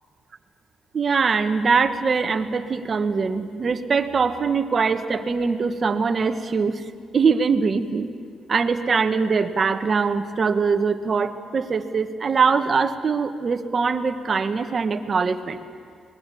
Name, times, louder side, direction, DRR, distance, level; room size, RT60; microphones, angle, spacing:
voice 1, 0.9-6.8 7.1-8.1 8.5-15.6, right 5 dB, 40° right, 8 dB, 1.6 m, -22 dB
23.5 x 20.5 x 8.6 m, 2.1 s
cardioid pair, 90°, 0 cm